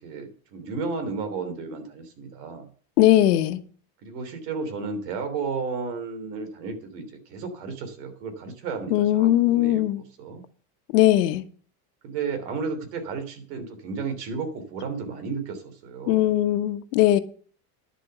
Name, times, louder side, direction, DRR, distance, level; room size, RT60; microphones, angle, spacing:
voice 1, 0.0-2.7 4.0-9.8 10.2-10.4 12.0-16.3, right 4 dB, 80° right, 3.4 m, -33 dB
voice 2, 3.0-3.6 8.9-10.0 10.9-11.4 16.1-17.2, left 14 dB, 80° left, 1.3 m, -19 dB
10.5 x 7.2 x 6.8 m
supercardioid pair, 125°, 46 cm